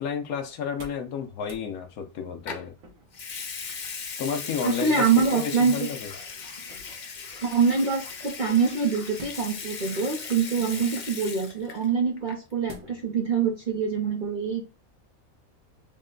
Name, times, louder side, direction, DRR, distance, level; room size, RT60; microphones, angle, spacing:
voice 1, 0.0-2.7 4.2-6.1, left 6 dB, 85° left, 1.2 m, -32 dB
sound 1, 0.6-1.1 1.4-1.7 2.8-3.3 4.7-5.4 6.6-7.1 9.1-9.8 10.5-11.0 12.7-13.1 13.6-13.7, right 1 dB, 65° right, 1.2 m, -47 dB
Water tap faucet / Sink (filling or washing) / Liquid, 2.5-2.7 3.1-11.9 12.2-12.5, left 5 dB, 50° left, 0.5 m, -38 dB
voice 2, 4.6-5.9 7.4-14.6, right 5 dB, 45° right, 0.7 m, -25 dB
4.0 x 2.2 x 3.7 m
omnidirectional pair, 1.5 m